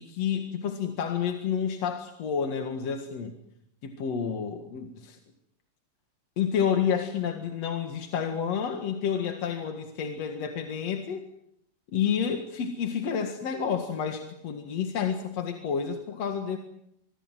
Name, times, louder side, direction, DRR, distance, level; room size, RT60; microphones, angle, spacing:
voice 1, 0.0-3.3 3.8-5.2 6.4-11.3 11.9-16.6, left 7 dB, 50° left, 5 dB, 2.3 m, -30 dB
25.5 x 22.5 x 7.6 m, 0.77 s
omnidirectional pair, 4.7 m